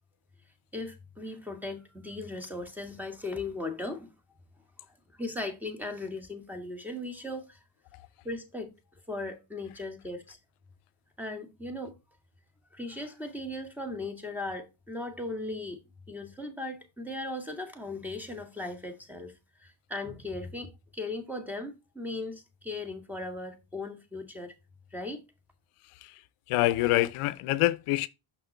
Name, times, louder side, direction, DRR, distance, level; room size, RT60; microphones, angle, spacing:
voice 1, 0.7-4.1 5.1-7.6 8.2-8.7 9.1-10.4 11.2-12.0 12.7-15.8 16.1-19.3 19.6-24.5 24.9-25.2, left 2 dB, 5° right, 1.9 m, -37 dB
voice 2, 26.5-28.1, left 16 dB, 85° left, 0.6 m, -26 dB
6.1 x 5.8 x 3.3 m
cardioid pair, 85°, 49 cm